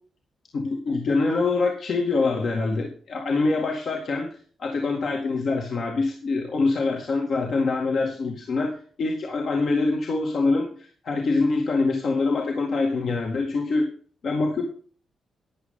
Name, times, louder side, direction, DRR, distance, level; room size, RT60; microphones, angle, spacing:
voice 1, 0.5-4.3 4.6-8.7 9.0-10.7 11.0-13.9 14.2-14.6, left 3 dB, 50° left, 0 dB, 2.3 m, -24 dB
12.5 x 10.5 x 3.9 m, 0.43 s
wide cardioid pair, 160°, 0 cm